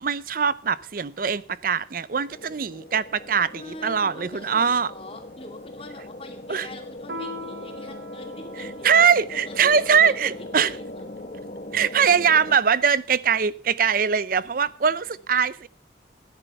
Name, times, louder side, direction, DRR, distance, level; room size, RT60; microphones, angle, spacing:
voice 1, 0.0-4.9 6.5-6.7 8.8-10.7 11.7-15.7, right 6 dB, 50° right, 0.6 m, -22 dB
sound 1, 2.3-12.6, left 1 dB, 45° left, 1.2 m, -40 dB
voice 2, 3.5-8.9 9.3-11.0 14.8-15.5, left 2 dB, 30° left, 2.5 m, -43 dB
Piano, 7.1-12.0, equal, 75° right, 1.4 m, -42 dB
13.5 x 10.0 x 5.6 m
head